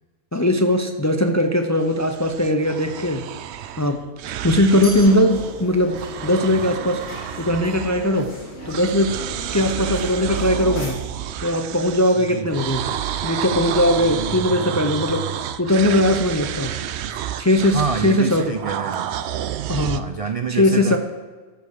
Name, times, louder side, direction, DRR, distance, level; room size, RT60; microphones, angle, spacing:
voice 1, 0.3-3.2 3.8-4.0 4.4-7.0 7.4-8.3 8.7-9.2 9.5-11.0 11.4-12.8 13.2-15.2 15.6-16.7 17.4-17.8 18.0-18.5 19.7-20.1 20.5-21.0, left 1 dB, 20° left, 6 dB, 0.4 m, -19 dB
sound 1, 1.8-5.6 5.9-8.4 8.7-20.0, right 11 dB, 70° right, 0.8 m, -30 dB
sound 2, 4.7-10.9, equal, 65° left, 3.8 m, -36 dB
voice 2, 12.2-12.5 14.0-14.8 17.0-17.2 17.7-19.1 19.8-21.0, right 5 dB, 50° right, 7 dB, 0.4 m, -28 dB
13.0 x 5.4 x 6.5 m, 1.4 s
omnidirectional pair, 1.2 m